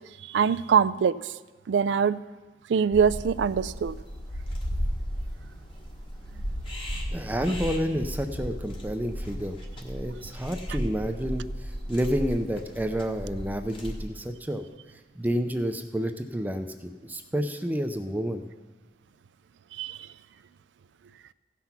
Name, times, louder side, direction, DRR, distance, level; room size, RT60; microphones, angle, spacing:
voice 1, 0.3-1.1 1.7-2.2 2.7-3.9 19.8-20.0, right 6 dB, 90° right, 16 dB, 0.3 m, -23 dB
sound 1, 2.9-14.0, equal, 30° left, 1.4 m, -35 dB
voice 2, 7.1-9.6 9.8-14.6 15.2-18.4, equal, 10° right, 6 dB, 0.5 m, -30 dB
15.5 x 5.8 x 5.8 m, 1.3 s
head